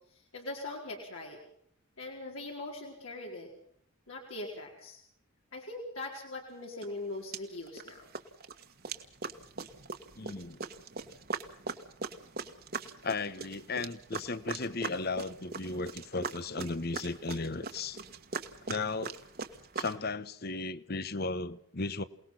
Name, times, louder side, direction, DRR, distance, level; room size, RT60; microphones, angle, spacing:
voice 1, 0.3-1.4 2.0-3.5 4.1-5.0 5.5-8.1, left 2 dB, 75° left, 4.6 m, -41 dB
sound 1, 6.8-6.9 7.3-7.9 8.1-19.9, right 4 dB, 45° right, 1.7 m, -41 dB
voice 2, 10.1-10.6 13.0-18.0 18.6-19.1 19.8-22.0, left 3 dB, 45° left, 1.1 m, -35 dB
28.0 x 19.5 x 5.9 m
head